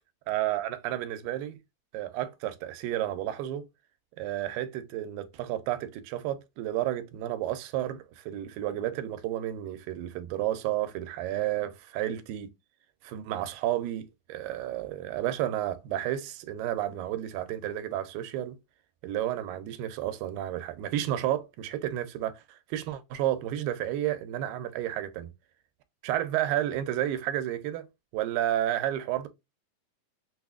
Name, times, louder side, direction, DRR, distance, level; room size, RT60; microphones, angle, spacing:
voice 1, 0.3-1.6 1.9-3.7 4.2-12.5 13.0-18.6 19.0-25.3 26.0-27.9 28.1-29.3, right 12 dB, 85° right, 2.2 m, -31 dB
5.8 x 2.0 x 2.3 m
omnidirectional pair, 4.0 m